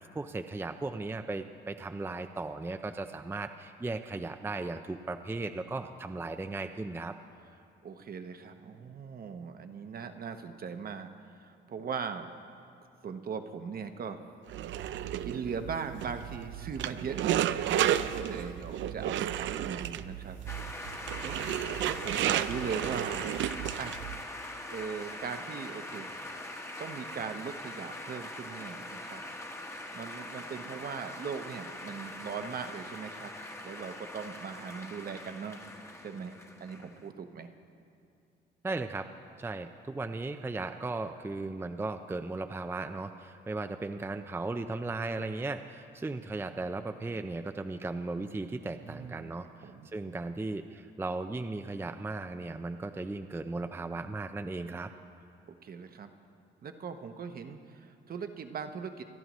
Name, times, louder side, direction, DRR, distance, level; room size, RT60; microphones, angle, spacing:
voice 1, 0.0-7.2 38.6-39.0 39.4-54.9, right 3 dB, 10° right, 7 dB, 0.4 m, -36 dB
voice 2, 7.8-12.3 13.0-14.2 15.2-17.5 18.1-20.4 21.2-21.5 21.9-23.4 23.8-24.0 24.7-26.1 26.8-29.2 29.9-33.3 33.6-35.6 36.0-37.5 48.8-49.4 49.6-49.9 55.6-56.1 56.6-59.0, right 6 dB, 50° right, 7 dB, 0.9 m, -39 dB
sound 1, 14.5-24.2, right 11 dB, 70° right, 0.5 m, -32 dB
sound 2, 20.5-37.1, left 1 dB, 15° left, 1.2 m, -43 dB
25.5 x 11.0 x 3.1 m, 2.5 s
cardioid pair, 90°, 20 cm